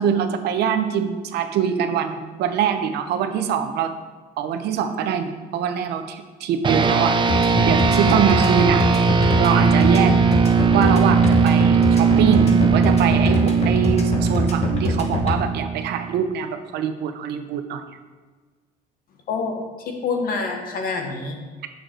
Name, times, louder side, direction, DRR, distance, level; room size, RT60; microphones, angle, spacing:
voice 1, 0.0-3.9 4.4-8.8 9.4-10.1 10.7-17.8, right 8 dB, 75° right, 8 dB, 0.8 m, -24 dB
sound 1, 6.6-16.4, right 5 dB, 30° right, 0.5 m, -19 dB
sound 2, 7.3-15.3, left 3 dB, 40° left, 1.3 m, -24 dB
voice 2, 19.3-21.4, left 4 dB, 60° left, 3 dB, 1.4 m, -27 dB
6.6 x 6.6 x 4.6 m, 1.4 s
cardioid pair, 110°, 17 cm